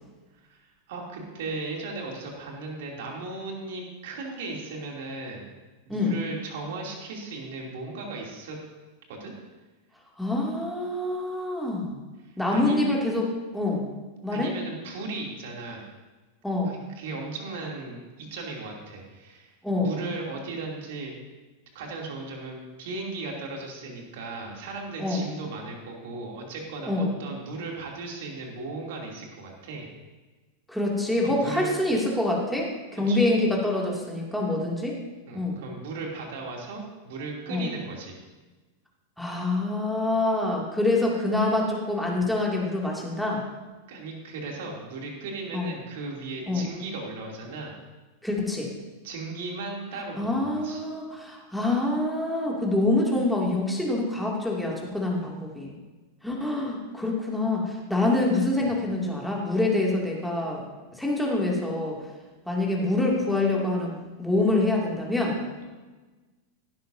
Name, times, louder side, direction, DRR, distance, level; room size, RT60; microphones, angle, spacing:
voice 1, 0.5-5.5 5.8-8.6 9.1-9.3 12.2-13.1 14.3-15.8 16.6-21.1 21.7-29.9 31.2-31.8 33.1-33.2 35.3-38.1 43.9-47.7 49.0-50.8 58.6-58.7, right 3 dB, 55° right, -1 dB, 2.9 m, -36 dB
voice 2, 10.2-12.0 12.4-13.3 13.5-13.9 14.2-14.5 16.4-16.8 19.6-19.9 25.0-25.3 26.9-27.1 30.7-35.0 35.3-35.6 37.5-37.7 39.2-43.4 45.5-45.7 46.5-46.7 48.2-48.7 50.2-55.7 56.2-60.6 61.0-62.0 62.5-65.4, left 2 dB, ahead, -2 dB, 2.5 m, -26 dB
16.5 x 12.5 x 2.7 m, 1.3 s
figure-of-eight pair, 90°, 0 cm